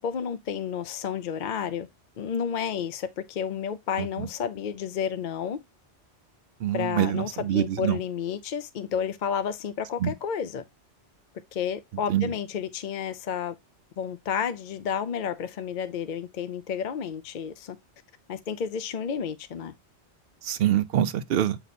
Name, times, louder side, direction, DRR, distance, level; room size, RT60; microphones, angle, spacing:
voice 1, 0.0-1.9 2.2-5.6 6.7-10.6 11.5-13.6 14.0-17.8 18.3-19.7, left 7 dB, 55° left, 0.6 m, -31 dB
voice 2, 6.6-8.0 10.0-10.1 12.1-12.3 20.5-21.6, right 11 dB, 60° right, 0.7 m, -25 dB
8.0 x 3.0 x 4.1 m
omnidirectional pair, 1.2 m